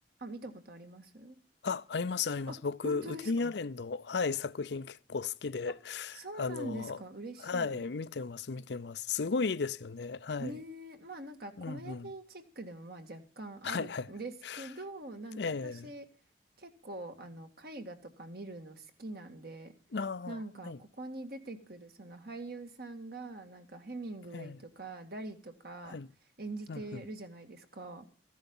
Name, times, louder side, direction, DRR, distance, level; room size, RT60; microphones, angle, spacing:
voice 1, 0.2-1.4 2.5-2.6 2.8-3.5 5.7-5.8 6.1-7.8 10.4-16.1 16.6-19.7 20.3-26.0 26.4-28.1, right 2 dB, 60° right, 2.1 m, -44 dB
voice 2, 1.6-7.0 7.4-10.5 11.6-12.1 13.6-14.1 14.5-14.6 15.4-15.9 19.9-20.4 20.6-20.8 24.3-24.6 25.8-26.1 26.7-27.0, left 4 dB, 70° left, 0.6 m, -35 dB
14.5 x 11.0 x 5.5 m
head